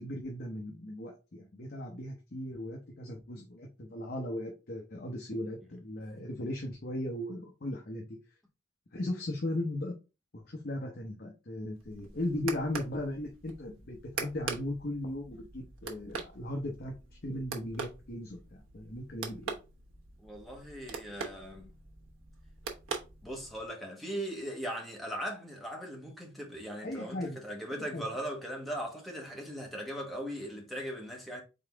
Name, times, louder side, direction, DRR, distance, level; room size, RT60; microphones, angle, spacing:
voice 1, 0.0-8.1 8.9-9.9 10.3-17.0 17.2-19.5 26.8-27.4 27.7-28.0, left 1 dB, 50° left, 0.9 m, -37 dB
sound 1, 11.8-23.7, right 5 dB, 80° right, 0.9 m, -43 dB
voice 2, 20.2-21.7 23.2-31.4, equal, ahead, 1.2 m, -39 dB
4.0 x 3.8 x 3.4 m
head